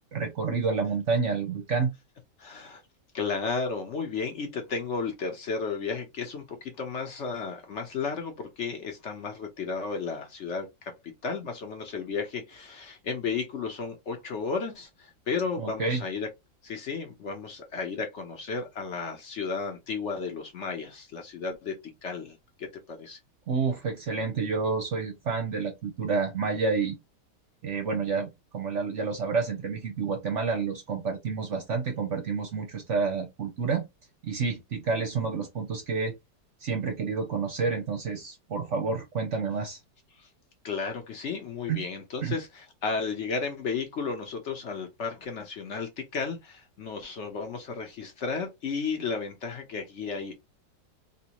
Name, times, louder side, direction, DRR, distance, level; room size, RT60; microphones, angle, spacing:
voice 1, 0.1-1.9 15.6-16.0 23.5-27.0 27.6-33.9 34.2-36.1 36.6-39.8 41.7-41.8 42.2-42.3, right 5 dB, 55° right, 0.8 m, -29 dB
voice 2, 2.4-2.8 3.1-10.9 11.2-16.3 16.6-23.2 40.2-40.3 40.6-50.4, left 5 dB, 55° left, 0.9 m, -33 dB
3.4 x 2.6 x 2.8 m
omnidirectional pair, 1.9 m